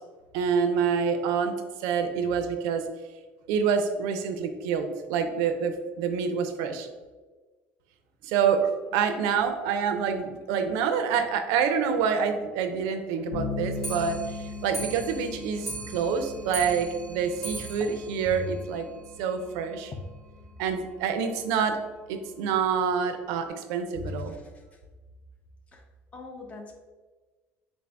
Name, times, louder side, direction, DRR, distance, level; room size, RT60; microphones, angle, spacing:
voice 1, 0.3-2.8 3.5-6.9 8.2-18.9 19.2-19.9 20.6-21.8 22.1-24.4, right 6 dB, 90° right, 7 dB, 0.4 m, -27 dB
Bass guitar, 13.3-23.0, left 3 dB, 70° left, 0.7 m, -40 dB
Clock, 13.7-19.2 19.6-19.7 19.9-20.0 20.4-20.5 20.7-20.8 21.5-21.6 22.3-22.4 23.1-23.2, right 2 dB, 5° left, 0.7 m, -40 dB
voice 2, 24.1-24.4 25.7-25.8 26.1-26.7, left 4 dB, 25° left, 3 dB, 0.4 m, -39 dB
3.8 x 2.5 x 3.3 m, 1.3 s
cardioid pair, 155°, 5 cm